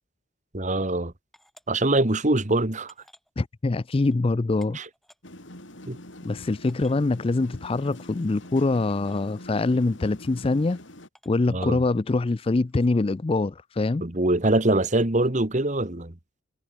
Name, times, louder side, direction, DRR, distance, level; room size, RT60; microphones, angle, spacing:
voice 1, 0.5-1.1 1.7-2.9 4.7-4.8 5.9-6.0 11.5-11.8 14.0-16.1, right 2 dB, 35° right, 1.6 m, -23 dB
sound 1, 1.3-1.7 2.4-2.5 2.9-3.3 4.1-4.2 4.6-5.2 6.0-6.1 6.3-6.4 6.7-7.0 8.2-8.3 8.9-9.2 10.2-10.5 11.1-11.4 12.7-12.9, equal, ahead, 7.0 m, -56 dB
voice 2, 3.4-4.8 6.2-10.8 11.3-14.1, left 3 dB, 25° left, 0.4 m, -24 dB
sound 2, 5.2-11.1, left 1 dB, 60° left, 5.9 m, -44 dB
head